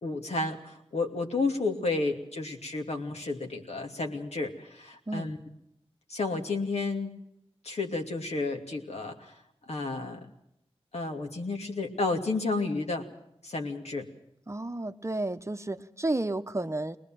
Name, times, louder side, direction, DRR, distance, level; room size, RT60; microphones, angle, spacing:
voice 1, 0.0-5.4 6.1-7.1 7.6-9.3 9.7-10.3 10.9-13.1 13.4-14.1, left 3 dB, 80° left, 2 dB, 2.7 m, -31 dB
voice 2, 14.5-17.0, right 2 dB, 25° right, 9 dB, 0.9 m, -32 dB
21.5 x 20.0 x 7.6 m, 0.77 s
wide cardioid pair, 80°, 11 cm